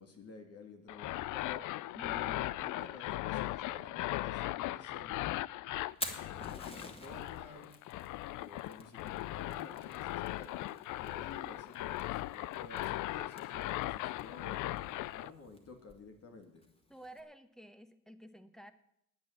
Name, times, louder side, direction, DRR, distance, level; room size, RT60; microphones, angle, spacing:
voice 1, 0.0-1.7 2.5-5.3 6.2-7.8 8.3-14.7 15.1-16.7, left 3 dB, 55° left, 4 dB, 2.7 m, -52 dB
sound 1, 0.9-15.3, left 16 dB, 85° left, 0.5 m, -38 dB
voice 2, 1.9-2.5 16.9-18.7, equal, ahead, 10 dB, 1.3 m, -51 dB
Fire, 5.8-17.2, left 1 dB, 20° left, 2.5 m, -50 dB
10.5 x 9.3 x 9.7 m, 0.78 s
cardioid pair, 90°, 30 cm